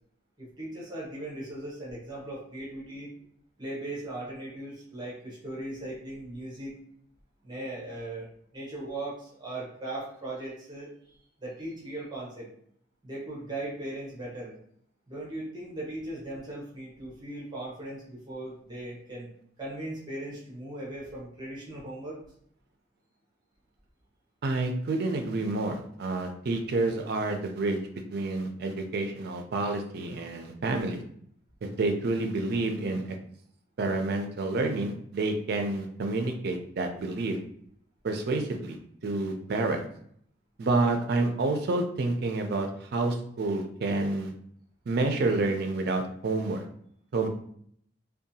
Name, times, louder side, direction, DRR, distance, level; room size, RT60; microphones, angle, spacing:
voice 1, 0.4-3.1 3.6-6.7 7.4-8.3 8.5-10.9 11.4-12.5 13.0-14.6 15.1-19.3 19.6-22.2, right 1 dB, 25° right, -6 dB, 0.8 m, -38 dB
voice 2, 24.4-27.8 28.1-31.0 31.6-33.2 33.8-37.4 38.0-38.8 39.0-39.9 40.6-44.3 44.9-46.6 47.1-47.3, right 2 dB, 55° right, 5 dB, 0.4 m, -29 dB
2.6 x 2.2 x 2.7 m, 0.65 s
head